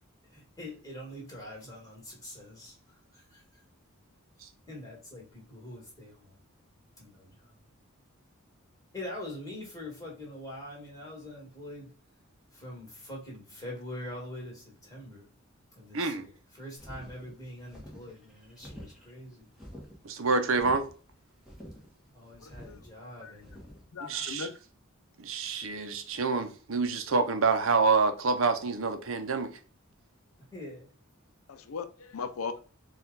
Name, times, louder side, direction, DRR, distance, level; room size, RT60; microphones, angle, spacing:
voice 1, 0.3-2.8 3.1-3.6 4.7-6.3 7.0-7.5 8.9-11.9 12.5-15.3 15.7-19.5 22.1-23.7 30.5-30.9, left 1 dB, 15° left, 1.8 m, -44 dB
voice 2, 15.9-16.3 20.0-20.9 24.0-24.5 25.2-29.5, right 4 dB, 65° right, 0.7 m, -27 dB
sound 1, 16.8-23.8, equal, 5° right, 1.2 m, -48 dB
voice 3, 22.4-22.9 23.2-23.4 23.9-24.5 31.5-32.6, left 5 dB, 80° left, 0.5 m, -38 dB
4.4 x 2.4 x 3.9 m
head